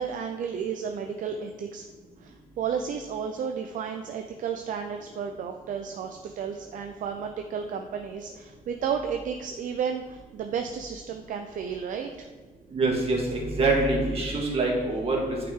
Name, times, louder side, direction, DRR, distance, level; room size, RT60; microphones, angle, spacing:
voice 1, 0.0-1.8 2.2-12.3, right 7 dB, 60° right, 5 dB, 0.5 m, -32 dB
voice 2, 12.7-15.2, right 2 dB, 40° right, -1 dB, 1.9 m, -25 dB
10.5 x 5.8 x 3.7 m, 1.3 s
cardioid pair, 160°, 15 cm